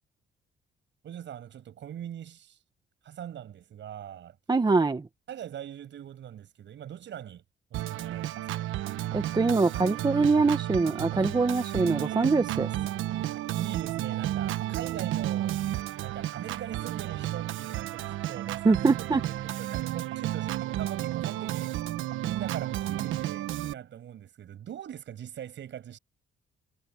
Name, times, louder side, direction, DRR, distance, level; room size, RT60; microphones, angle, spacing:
voice 1, 1.0-2.6 3.0-4.4 5.3-7.4 7.7-8.7 13.3-15.6 16.0-18.9 19.2-21.8 22.2-26.0, right 10 dB, 70° right, 7.4 m, -41 dB
voice 2, 4.5-5.1 9.1-12.7 18.6-19.2, right 4 dB, 20° right, 0.9 m, -24 dB
Organ, 7.7-23.7, right 14 dB, 85° right, 1.2 m, -32 dB
cardioid pair, 90°, 20 cm